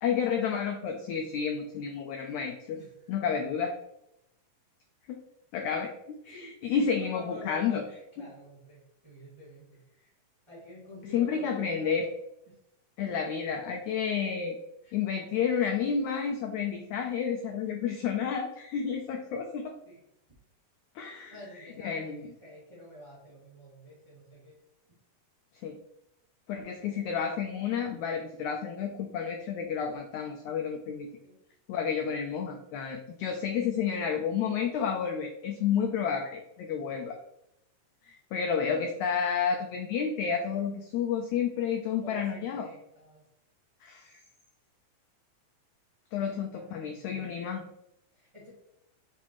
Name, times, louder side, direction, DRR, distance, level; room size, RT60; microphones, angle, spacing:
voice 1, 0.0-2.8 3.1-3.7 5.5-5.9 6.3-7.8 11.1-12.0 13.0-14.6 14.9-19.7 21.0-21.3 21.8-22.3 25.6-25.8 26.5-31.1 31.7-37.2 38.0-42.7 43.8-44.2 46.1-47.7, left 7 dB, 80° left, 3 dB, 1.7 m, -30 dB
voice 2, 2.7-3.1 6.2-10.1 10.5-12.2 12.5-12.6 13.0-13.3 14.8-14.9 19.8-20.0 21.3-24.6 31.2-31.3 36.8-37.0 42.0-43.2 46.3-47.3 48.1-48.5, equal, 10° right, -10 dB, 1.8 m, -49 dB
5.8 x 5.6 x 3.1 m, 0.82 s
omnidirectional pair, 4.0 m